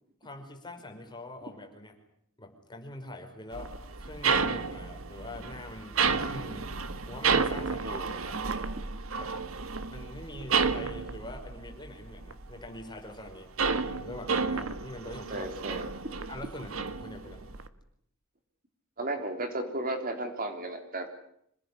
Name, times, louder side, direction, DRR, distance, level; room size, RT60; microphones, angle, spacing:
voice 1, 0.2-1.9 2.4-3.7 4.0-6.7 7.1-8.4 9.2-9.3 9.9-13.5 13.9-15.5 16.3-17.5, left 1 dB, 20° left, 3 dB, 5.1 m, -44 dB
sound 1, 3.5-12.7 13.0-17.7, right 5 dB, 75° right, 1.6 m, -31 dB
voice 2, 15.3-15.9 19.0-21.1, right 2 dB, 45° right, 6 dB, 3.5 m, -34 dB
26.5 x 18.5 x 9.9 m, 0.70 s
head